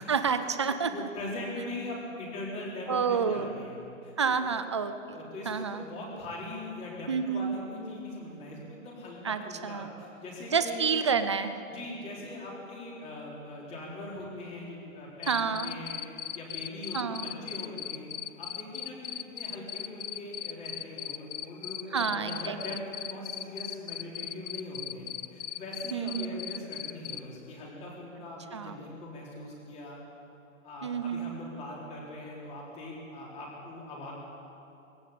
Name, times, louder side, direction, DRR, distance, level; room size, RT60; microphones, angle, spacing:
voice 1, 0.0-0.9 2.9-3.6 4.2-5.2 5.5-5.8 7.1-7.6 9.2-9.9 10.5-11.6 15.3-15.7 16.9-17.3 21.9-22.6 25.9-26.4 28.5-28.7 30.8-31.3, right 6 dB, 20° right, 10 dB, 0.4 m, -29 dB
voice 2, 0.9-3.7 4.0-4.4 5.1-10.9 11.7-16.0 16.3-18.1 18.4-30.0 30.6-34.1, left 1 dB, 15° left, -3 dB, 3.9 m, -41 dB
Cricket, 15.2-27.2, left 11 dB, 60° left, 0.7 m, -37 dB
21.5 x 15.0 x 8.6 m, 2.8 s
hypercardioid pair, 170°, 40 cm